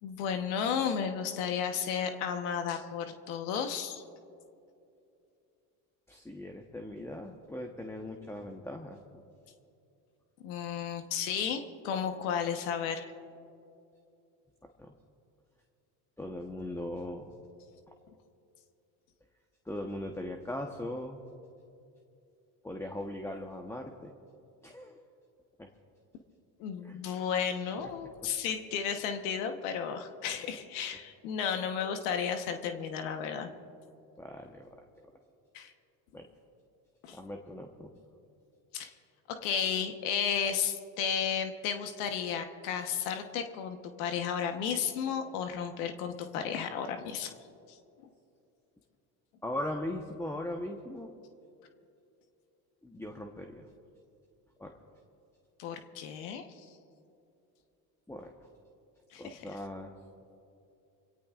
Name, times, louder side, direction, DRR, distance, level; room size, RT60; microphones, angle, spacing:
voice 1, 0.0-4.0 10.4-13.1 26.6-33.5 35.5-35.7 37.0-37.2 38.7-38.9 39.3-47.3 47.7-47.8 55.6-56.7 59.1-59.4, left 7 dB, 85° left, 6 dB, 1.2 m, -33 dB
voice 2, 6.1-9.0 14.6-14.9 16.2-17.4 19.7-21.2 22.6-24.1 24.6-25.1 25.6-25.7 26.8-27.0 27.8-27.9 34.2-35.1 36.1-36.3 37.1-37.9 49.4-51.1 52.8-53.7 54.6-54.7 58.1-58.3 59.2-59.9, left 1 dB, 5° left, 3 dB, 1.0 m, -39 dB
25.0 x 17.0 x 2.5 m, 2.7 s
supercardioid pair, 100°, 43 cm